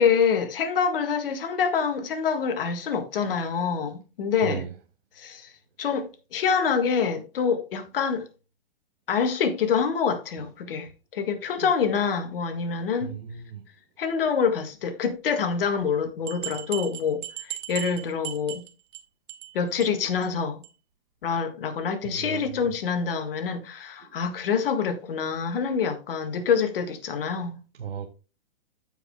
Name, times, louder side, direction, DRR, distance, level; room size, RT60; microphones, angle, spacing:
voice 1, 0.0-4.6 5.2-5.5 5.8-8.3 9.1-13.1 14.0-18.6 19.5-20.6 21.2-27.6, left 6 dB, 65° left, 1.8 m, -26 dB
voice 2, 13.0-13.6 22.0-22.5 27.8-28.1, right 7 dB, 80° right, 1.3 m, -35 dB
sound 1, 16.3-19.0 19.3-19.5 19.8-19.9 20.2-20.3 20.6-20.7, right 13 dB, 55° right, 1.2 m, -36 dB
15.0 x 5.2 x 2.3 m
hypercardioid pair, 135°, 30 cm